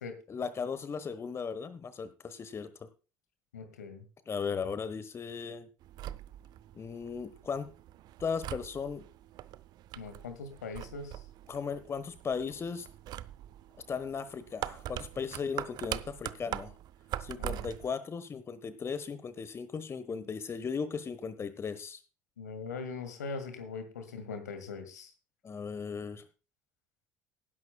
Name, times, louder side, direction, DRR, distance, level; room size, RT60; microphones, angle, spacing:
voice 1, 0.3-2.7 4.3-5.7 6.8-7.7 8.2-9.1 11.5-12.9 13.9-16.7 17.2-22.0 25.4-26.2, left 5 dB, 30° left, 13 dB, 1.2 m, -37 dB
voice 2, 3.5-4.0 10.0-11.2 17.4-17.6 22.4-25.1, left 4 dB, 75° left, 9 dB, 2.0 m, -41 dB
sound 1, 5.8-17.9, right 13 dB, 45° right, 0.6 m, -43 dB
18.5 x 11.0 x 2.3 m, 0.33 s
figure-of-eight pair, 60°, 9 cm